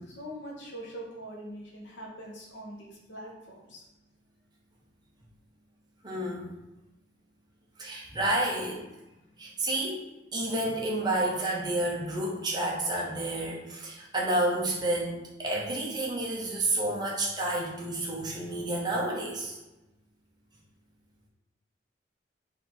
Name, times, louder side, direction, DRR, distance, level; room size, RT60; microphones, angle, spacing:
voice 1, 0.0-3.9 9.2-9.3, equal, 80° left, -2 dB, 1.1 m, -43 dB
voice 2, 6.0-6.5 7.8-8.9 9.4-10.0 10.3-19.6, right 1 dB, 25° right, -3 dB, 0.8 m, -30 dB
4.0 x 2.7 x 4.3 m, 0.99 s
head